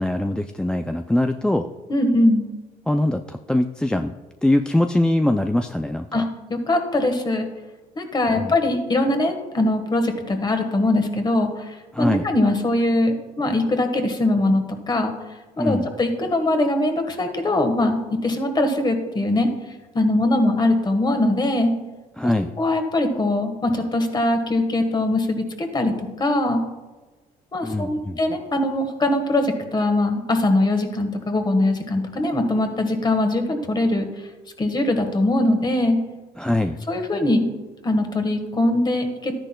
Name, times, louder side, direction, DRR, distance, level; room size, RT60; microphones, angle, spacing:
voice 1, 0.0-1.7 2.9-4.1 4.4-6.3 8.3-8.6 11.9-12.2 15.6-15.9 22.2-22.5 27.6-28.2 36.4-36.8, left 1 dB, 5° left, 6 dB, 0.3 m, -22 dB
voice 2, 1.9-2.5 6.1-6.2 6.5-7.5 7.9-15.1 15.6-19.5 19.9-21.7 22.2-22.3 22.6-26.6 27.5-34.1 34.6-36.0 36.9-37.4 37.8-39.3, left 1 dB, 25° left, 6 dB, 1.4 m, -21 dB
12.5 x 10.0 x 2.3 m, 1.2 s
cardioid pair, 110°, 17 cm